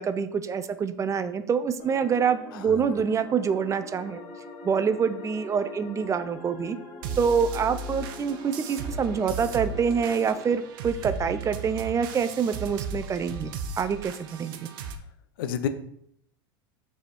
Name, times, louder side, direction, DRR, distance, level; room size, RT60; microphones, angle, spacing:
voice 1, 0.0-4.2 4.6-6.8 7.2-14.7, right 6 dB, 25° right, 11 dB, 0.5 m, -26 dB
sound 1, 1.8-10.5, left 3 dB, 50° left, 1.8 m, -44 dB
voice 2, 2.5-3.0 15.4-15.7, left 9 dB, 70° left, 10 dB, 0.6 m, -31 dB
sound 2, 7.0-15.0, right 4 dB, 65° right, 0.7 m, -36 dB
6.5 x 3.5 x 4.4 m, 0.71 s
hypercardioid pair, 85°, 12 cm